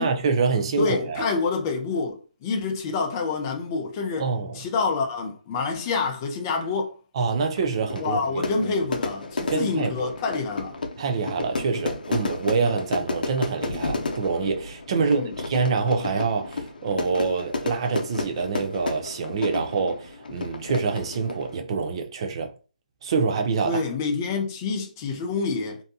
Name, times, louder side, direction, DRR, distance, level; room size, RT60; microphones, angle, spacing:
voice 1, 0.0-1.2 4.2-4.6 7.2-8.8 9.5-10.1 11.0-22.5 23.0-23.8, right 5 dB, 35° right, 0.4 m, -26 dB
voice 2, 0.8-4.3 4.5-6.9 8.0-10.8 15.0-15.3 23.6-25.8, left 4 dB, 25° left, 0.5 m, -27 dB
Fire / Fireworks, 7.6-21.6, left 3 dB, 80° left, 0.5 m, -32 dB
2.7 x 2.1 x 2.7 m
hypercardioid pair, 165°, 5 cm